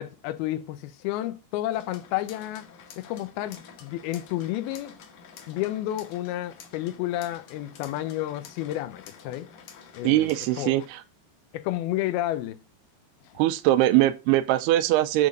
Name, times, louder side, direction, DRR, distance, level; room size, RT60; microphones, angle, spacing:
voice 1, 0.0-2.7 3.0-5.0 5.5-9.5 9.9-10.9 11.5-12.6 13.3-13.4, left 14 dB, 80° left, 2.4 m, -31 dB
sound 1, 1.7-10.9, left 7 dB, 60° left, 2.3 m, -49 dB
voice 2, 10.0-11.0 13.4-15.3, right 15 dB, 85° right, 2.7 m, -22 dB
10.5 x 4.0 x 5.2 m
omnidirectional pair, 4.6 m